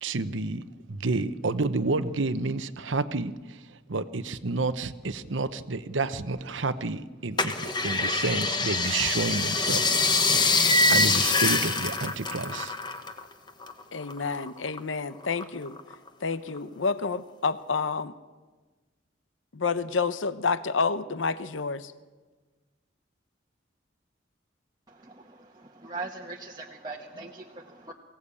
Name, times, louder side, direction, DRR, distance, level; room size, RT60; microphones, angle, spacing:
voice 1, 0.0-9.9 10.9-12.7, right 3 dB, 75° right, 12 dB, 0.9 m, -30 dB
sound 1, 7.4-13.2 13.5-14.8 15.2-16.1 16.6-16.7, left 3 dB, 20° left, 1.3 m, -25 dB
voice 2, 13.9-15.7 16.2-18.1 19.5-21.9, left 4 dB, 80° left, 14 dB, 0.8 m, -29 dB
voice 3, 25.8-27.9, right 3 dB, 20° right, -1 dB, 1.2 m, -39 dB
23.0 x 16.5 x 8.5 m, 1.3 s
head